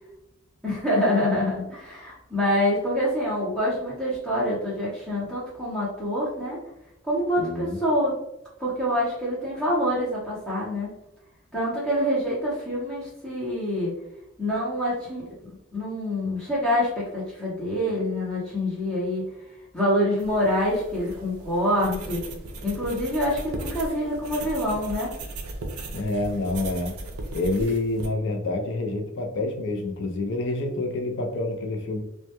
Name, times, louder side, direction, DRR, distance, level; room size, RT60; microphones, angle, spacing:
voice 1, 0.6-6.6 7.0-8.1 8.6-10.9 11.5-13.9 14.4-19.3 19.7-22.2 22.6-25.1, equal, 5° left, -8 dB, 0.6 m, -26 dB
voice 2, 7.4-7.8 25.9-26.9 27.3-32.0, left 2 dB, 55° left, 3 dB, 0.4 m, -27 dB
sound 1, 20.2-28.1, right 2 dB, 80° right, 0.4 m, -37 dB
2.1 x 2.1 x 2.8 m, 0.86 s
head